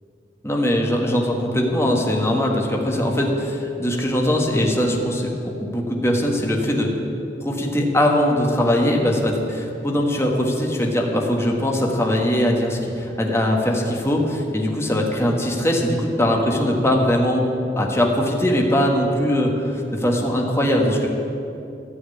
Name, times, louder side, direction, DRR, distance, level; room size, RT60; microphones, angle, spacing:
voice 1, 0.4-6.9 7.4-17.5 17.7-21.1, left 1 dB, 15° left, 0 dB, 1.4 m, -21 dB
13.0 x 6.3 x 9.7 m, 2.7 s
head